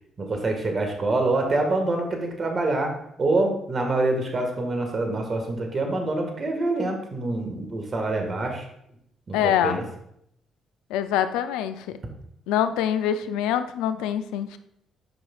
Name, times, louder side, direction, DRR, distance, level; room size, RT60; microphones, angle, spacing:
voice 1, 0.2-2.9 3.2-8.7 9.3-9.8, right 2 dB, 45° right, 3 dB, 1.7 m, -26 dB
voice 2, 9.3-9.8 10.9-11.9 12.5-14.6, left 10 dB, 80° left, 11 dB, 0.4 m, -24 dB
9.5 x 5.5 x 2.4 m, 0.75 s
hypercardioid pair, 50°, 0 cm